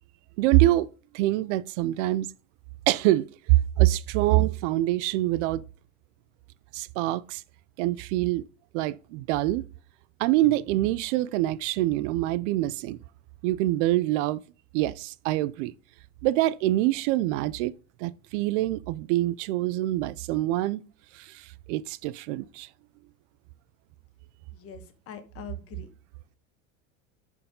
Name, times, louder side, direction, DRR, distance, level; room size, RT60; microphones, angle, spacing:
voice 1, 0.4-0.9 1.1-2.3 2.9-5.6 6.7-7.4 7.8-8.4 8.7-9.6 10.2-13.0 13.4-14.4 14.7-15.7 16.2-17.7 18.0-20.8 21.1-22.7, right 16 dB, 65° right, 0.5 m, -25 dB
voice 2, 24.5-25.9, left 8 dB, 35° left, 1.2 m, -43 dB
11.0 x 4.6 x 3.6 m
supercardioid pair, 155°, 39 cm